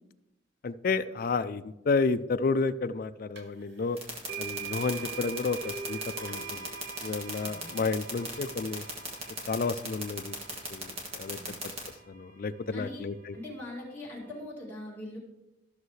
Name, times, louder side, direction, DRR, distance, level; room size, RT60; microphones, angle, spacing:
voice 1, 0.6-4.0 4.4-6.7 7.0-8.8 9.5-10.4 10.7-11.6 12.1-13.4, left 4 dB, 45° left, 12 dB, 0.3 m, -31 dB
sound 1, 3.4-3.5 4.3-12.3, right 6 dB, 60° right, 1.0 m, -43 dB
sound 2, 4.0-11.9, right 3 dB, 30° right, 1.6 m, -36 dB
voice 2, 7.4-7.8 11.4-11.6 12.7-13.1 13.3-15.2, left 1 dB, 10° left, -7 dB, 2.4 m, -41 dB
13.5 x 6.4 x 3.2 m, 0.99 s
head